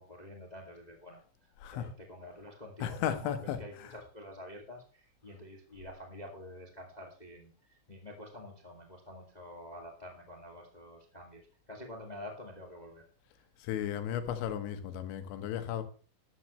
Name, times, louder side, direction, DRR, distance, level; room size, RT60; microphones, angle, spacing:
voice 1, 0.0-13.0, left 1 dB, 50° left, 0.5 m, -48 dB
voice 2, 1.6-1.9 2.8-3.9 13.6-15.8, left 10 dB, 90° left, 3.5 m, -35 dB
13.5 x 11.0 x 3.1 m
omnidirectional pair, 5.1 m